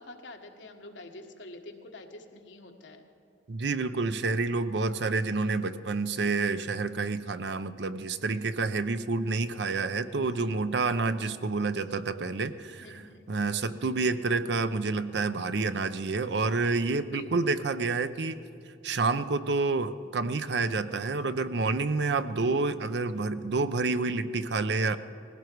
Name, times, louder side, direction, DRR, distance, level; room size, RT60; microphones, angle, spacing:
voice 1, 0.0-3.1 12.8-13.2 17.0-17.5, left 2 dB, 80° left, 3 dB, 1.4 m, -46 dB
voice 2, 3.5-13.0 13.3-18.4 18.8-25.0, right 3 dB, 65° right, 12 dB, 0.6 m, -28 dB
19.0 x 16.0 x 4.6 m, 2.6 s
head